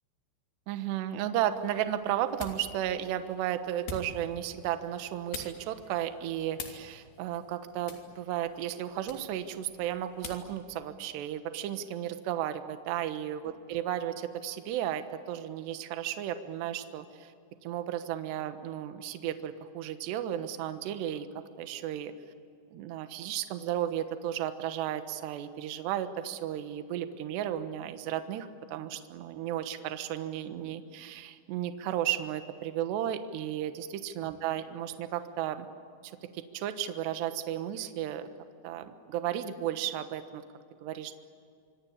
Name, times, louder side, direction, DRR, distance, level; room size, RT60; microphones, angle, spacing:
voice 1, 0.7-17.3 17.6-21.3 21.6-22.1 22.7-35.7 36.0-38.3 38.6-40.4 40.8-41.2, right 11 dB, 70° right, 9 dB, 3.1 m, -34 dB
sound 1, 1.4-10.6, left 4 dB, 60° left, 4.5 m, -47 dB
25.5 x 25.0 x 8.6 m, 2.4 s
omnidirectional pair, 5.6 m